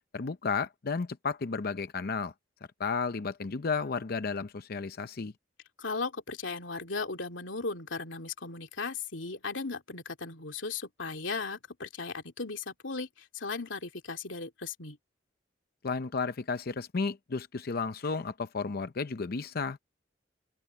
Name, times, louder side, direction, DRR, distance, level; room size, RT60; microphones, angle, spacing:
voice 1, 0.1-2.3 2.8-5.3 15.8-19.8, left 4 dB, 55° left, 0.6 m, -33 dB
voice 2, 5.8-15.0, left 4 dB, 85° left, 2.7 m, -37 dB
open air
head